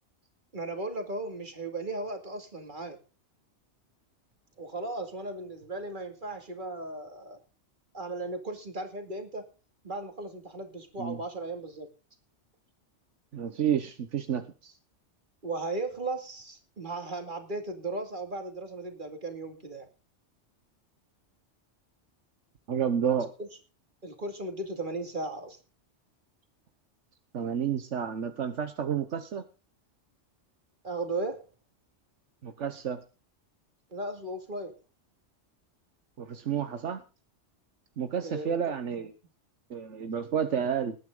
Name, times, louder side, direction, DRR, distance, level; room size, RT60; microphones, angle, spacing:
voice 1, 0.5-3.0 4.6-7.4 7.9-9.4 9.8-11.9 15.4-19.9 23.4-23.5 24.0-25.6 30.8-31.5 33.9-34.8 38.2-38.7, right 2 dB, 45° right, 5 dB, 2.5 m, -36 dB
voice 2, 13.3-14.7 22.7-23.3 27.3-29.4 32.4-33.0 36.2-37.0 38.0-39.1 39.7-41.0, right 8 dB, 80° right, 9 dB, 1.4 m, -30 dB
20.0 x 9.5 x 3.8 m, 0.33 s
omnidirectional pair, 1.2 m